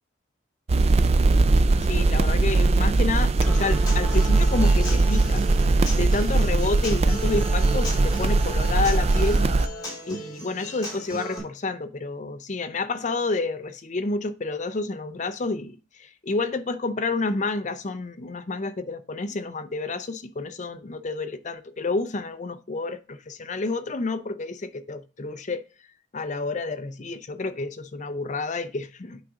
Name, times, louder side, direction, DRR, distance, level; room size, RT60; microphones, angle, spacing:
sound 1, 0.7-9.7, right 3 dB, 30° right, 0.4 m, -20 dB
voice 1, 1.8-5.5 5.9-9.4 10.1-15.8 16.2-25.6 26.1-29.2, left 3 dB, 40° left, 0.6 m, -29 dB
Human voice / Acoustic guitar, 3.4-11.4, right 1 dB, 20° left, 3.1 m, -36 dB
8.9 x 3.7 x 4.9 m
head